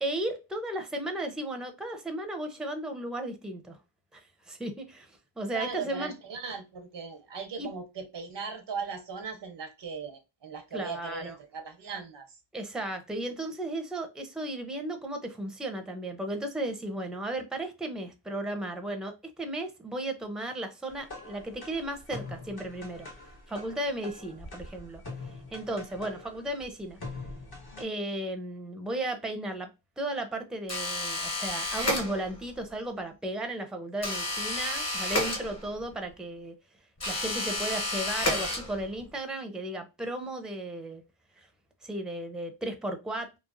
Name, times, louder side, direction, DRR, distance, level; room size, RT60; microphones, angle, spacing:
voice 1, 0.0-3.8 4.1-6.1 7.6-7.7 10.7-11.4 12.5-23.1 23.5-25.0 25.5-27.0 27.8-29.7 30.0-36.6 37.1-41.0 41.4-41.5 41.8-43.4, right 1 dB, ahead, 0.5 m, -35 dB
voice 2, 5.5-12.2, right 5 dB, 75° right, 0.8 m, -38 dB
sound 1, 20.9-27.8, left 3 dB, 60° left, 1.2 m, -44 dB
sound 2, 30.7-32.5 34.0-35.9 37.0-39.0, left 1 dB, 35° left, 0.9 m, -31 dB
3.0 x 2.0 x 2.4 m
cardioid pair, 45°, 43 cm